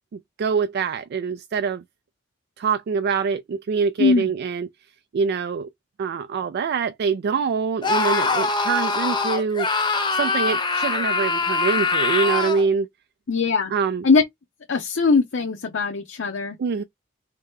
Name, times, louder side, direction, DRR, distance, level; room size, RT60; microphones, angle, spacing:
voice 1, 0.1-1.8 2.6-4.7 5.1-5.7 6.0-9.8 10.1-12.9 13.7-14.0 16.6-16.8, right 5 dB, 55° right, 0.3 m, -24 dB
voice 2, 4.0-4.3 13.3-13.7 14.0-14.2 14.7-16.6, left 4 dB, 65° left, 0.6 m, -20 dB
Screaming, 7.8-12.7, left 3 dB, 25° left, 0.7 m, -23 dB
3.2 x 2.8 x 3.5 m
head